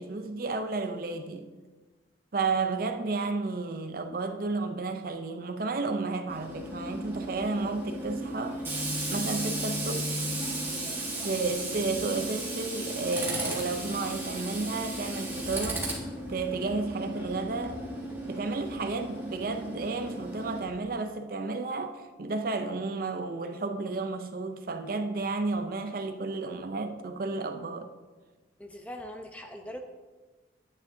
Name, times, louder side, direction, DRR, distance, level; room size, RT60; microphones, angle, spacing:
voice 1, 0.0-1.5 2.3-8.6 9.1-10.2 11.2-15.9 16.3-17.8 18.2-27.9, right 3 dB, 50° right, 0.5 m, -32 dB
Tools, 6.3-20.6, right 1 dB, 10° right, 1.3 m, -35 dB
voice 2, 28.6-29.8, left 1 dB, 5° left, 0.6 m, -41 dB
9.7 x 9.2 x 2.7 m
head